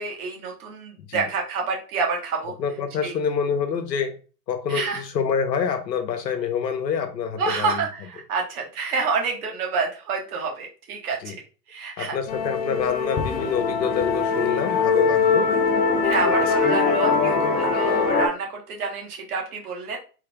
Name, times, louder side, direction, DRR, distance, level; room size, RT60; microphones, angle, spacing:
voice 1, 0.0-2.5 3.0-3.1 4.7-5.0 7.4-11.3 11.7-12.1 16.0-20.0, right 4 dB, 65° right, 1.4 m, -28 dB
voice 2, 2.6-4.1 4.5-7.8 11.2-11.4 12.0-15.5, left 6 dB, 85° left, 0.9 m, -26 dB
Musical instrument, 12.3-18.3, left 4 dB, 20° left, 0.5 m, -22 dB
3.6 x 3.2 x 2.3 m
hypercardioid pair, 90°, 49 cm